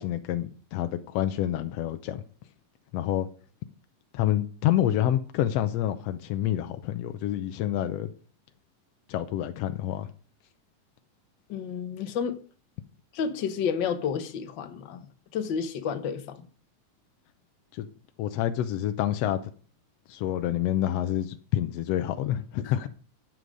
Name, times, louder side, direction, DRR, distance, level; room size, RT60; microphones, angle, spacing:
voice 1, 0.0-2.2 2.9-3.3 4.1-8.1 9.1-10.1 17.7-17.9 18.2-19.4 20.1-22.9, left 12 dB, 75° left, 1.5 m, -28 dB
voice 2, 11.5-12.4 13.1-15.0 15.3-16.4 22.6-22.7, left 7 dB, 55° left, 1.3 m, -30 dB
11.0 x 7.7 x 5.2 m
omnidirectional pair, 3.6 m